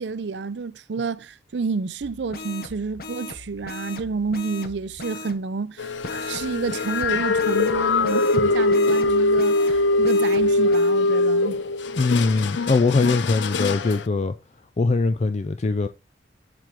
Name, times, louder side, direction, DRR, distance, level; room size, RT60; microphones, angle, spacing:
voice 1, 0.0-11.6, right 4 dB, 65° right, 0.5 m, -29 dB
sound 1, 2.0-5.4 6.0-10.9, left 3 dB, 55° left, 1.1 m, -38 dB
sound 2, 5.8-14.0, left 2 dB, 75° left, 0.6 m, -22 dB
voice 2, 12.0-14.3 14.8-15.9, left 3 dB, 35° left, 0.3 m, -21 dB
7.6 x 6.2 x 3.5 m
head